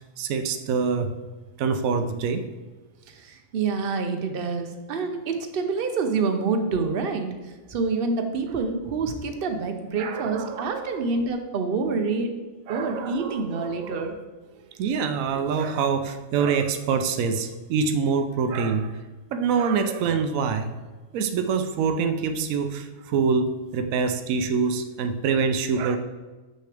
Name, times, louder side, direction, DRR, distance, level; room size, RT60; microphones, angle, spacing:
voice 1, 0.2-1.1 1.6-2.5 10.0-11.1 12.7-14.1 14.8-19.0 19.3-20.7 21.1-26.0, right 5 dB, 80° right, 7 dB, 1.0 m, -25 dB
voice 2, 3.1-7.3 7.7-12.3 12.7-14.2, right 4 dB, 50° right, 6 dB, 0.8 m, -27 dB
6.8 x 6.4 x 3.3 m, 1.3 s
omnidirectional pair, 1.4 m